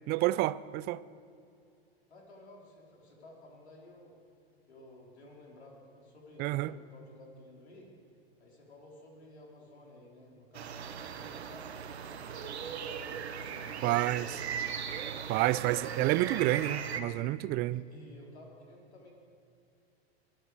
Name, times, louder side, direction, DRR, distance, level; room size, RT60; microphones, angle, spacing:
voice 1, 0.1-1.0 6.4-6.7 13.8-14.3 15.3-17.8, right 17 dB, 30° right, 0.4 m, -29 dB
voice 2, 2.1-4.1 4.7-7.9 8.4-14.8 15.5-16.2 16.5-17.2 17.7-19.1, left 1 dB, 90° left, 4.2 m, -54 dB
sound 1, 10.5-17.0, right 7 dB, 85° right, 1.3 m, -38 dB
23.5 x 8.8 x 6.5 m
hypercardioid pair, 110°, 32 cm